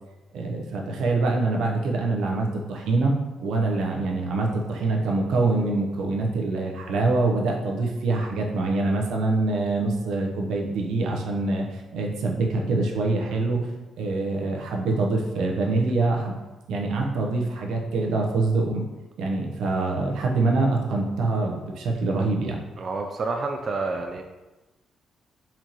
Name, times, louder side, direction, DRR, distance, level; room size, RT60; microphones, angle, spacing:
voice 1, 0.3-3.1 3.4-13.7 14.0-16.3 16.7-18.8 19.2-22.6, right 3 dB, 85° right, 0 dB, 0.8 m, -25 dB
voice 2, 22.8-24.2, right 3 dB, 40° right, 4 dB, 0.4 m, -29 dB
4.4 x 3.0 x 3.9 m, 1.1 s
cardioid pair, 110°, 0 cm